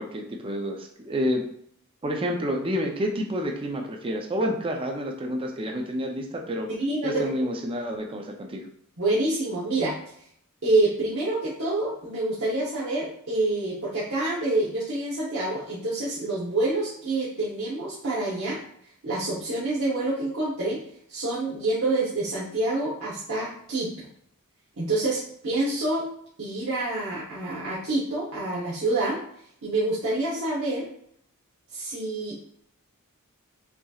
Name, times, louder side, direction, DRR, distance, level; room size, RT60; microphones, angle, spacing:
voice 1, 0.0-1.4 2.0-6.7 7.0-8.6, equal, 25° right, 1 dB, 0.5 m, -29 dB
voice 2, 6.8-7.3 9.0-9.9 10.6-18.6 19.0-20.8 21.1-23.9 24.8-26.1 26.4-29.2 29.6-30.9 31.7-32.6, right 2 dB, 65° right, -8 dB, 1.0 m, -27 dB
5.8 x 2.8 x 2.3 m, 0.66 s
head